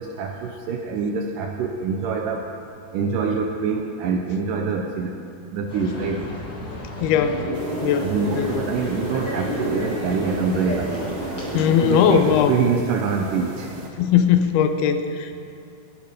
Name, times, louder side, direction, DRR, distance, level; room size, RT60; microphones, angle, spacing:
voice 1, 0.0-2.5 2.9-5.2 5.5-6.3 8.0-10.9 11.7-13.7, right 5 dB, 80° right, 3 dB, 1.9 m, -25 dB
sound 1, 5.7-12.4, left 1 dB, 35° left, 2.4 m, -34 dB
voice 2, 7.0-7.5 7.8-8.7 11.5-12.5 14.0-15.5, left 8 dB, 85° left, 8 dB, 2.6 m, -20 dB
sound 2, 7.4-12.4, equal, 15° right, 3.6 m, -33 dB
sound 3, 7.5-13.9, right 2 dB, 55° right, 1.8 m, -35 dB
18.0 x 10.5 x 5.2 m, 2.5 s
omnidirectional pair, 4.6 m